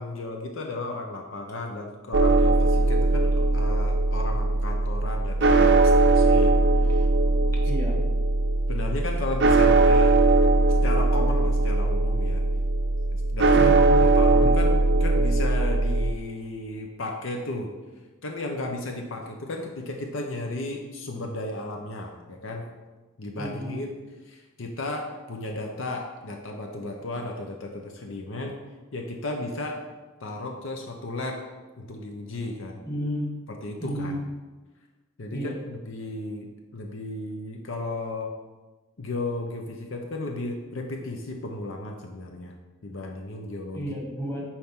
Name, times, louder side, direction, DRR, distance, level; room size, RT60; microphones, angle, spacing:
voice 1, 0.0-6.5 6.8-7.1 8.7-10.2 10.8-12.4 13.1-17.7 18.2-22.6 23.2-23.9 24.3-28.6 28.9-29.8 30.2-31.4 31.8-32.8 33.5-34.2 35.2-38.3 39.0-42.5 42.8-43.9, left 2 dB, 65° left, 2 dB, 0.8 m, -34 dB
sound 1, 2.1-16.1, right 2 dB, 60° right, 0.6 m, -20 dB
voice 2, 7.7-8.0 13.5-14.0 14.3-14.7 23.4-23.8 32.9-33.3 33.8-34.2 35.3-35.6 43.7-44.4, equal, 15° left, -2 dB, 1.5 m, -32 dB
9.9 x 4.5 x 3.7 m, 1.2 s
head